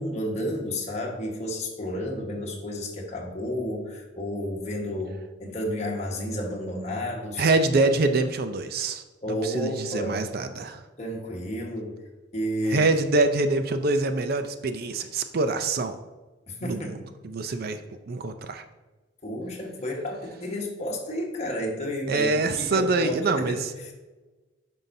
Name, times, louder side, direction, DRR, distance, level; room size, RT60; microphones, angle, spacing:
voice 1, 0.0-7.4 9.2-10.2 11.0-12.0 12.3-12.9 16.5-16.9 19.2-23.6 23.8-23.9, equal, 35° left, -1 dB, 1.4 m, -31 dB
voice 2, 7.4-9.0 9.3-10.8 12.7-16.0 16.6-17.8 18.1-18.6 22.1-23.7, right 3 dB, 55° right, 9 dB, 0.5 m, -25 dB
9.2 x 5.6 x 2.7 m, 1.2 s
head